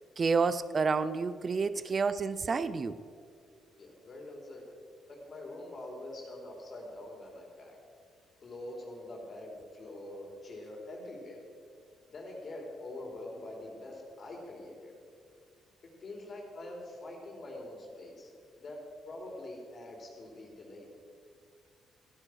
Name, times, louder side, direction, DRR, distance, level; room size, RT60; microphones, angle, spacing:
voice 1, 0.2-3.0, right 4 dB, 40° right, 15 dB, 0.6 m, -29 dB
voice 2, 3.8-4.6 5.1-7.8 8.4-11.4 12.1-14.9 16.0-18.3 18.6-18.8 19.1-21.0, left 1 dB, 45° left, -1 dB, 3.8 m, -44 dB
15.0 x 9.7 x 6.4 m, 2.3 s
cardioid pair, 90°, 0 cm